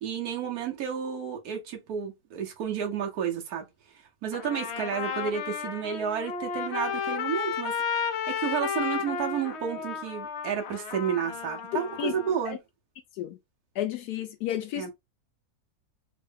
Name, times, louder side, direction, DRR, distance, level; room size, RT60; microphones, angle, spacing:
voice 1, 0.0-12.6 14.7-14.9, right 8 dB, 75° right, 1.4 m, -31 dB
Trumpet, 4.3-12.4, left 7 dB, 60° left, 0.8 m, -33 dB
voice 2, 13.8-14.9, left 11 dB, 80° left, 1.1 m, -32 dB
3.7 x 2.1 x 3.4 m
omnidirectional pair, 1.6 m